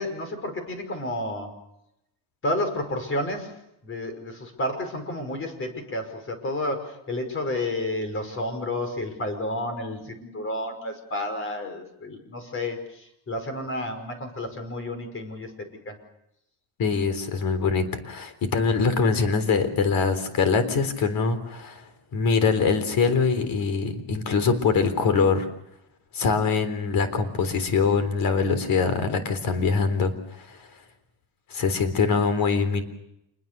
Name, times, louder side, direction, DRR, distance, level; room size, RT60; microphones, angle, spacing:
voice 1, 0.0-1.5 2.4-16.0, left 1 dB, 30° left, 8 dB, 5.4 m, -31 dB
voice 2, 16.8-21.8 22.1-25.5 26.1-30.6 31.5-32.8, left 5 dB, 45° left, 11 dB, 3.8 m, -23 dB
27.5 x 21.5 x 6.8 m, 0.82 s
cardioid pair, 145°, 45 cm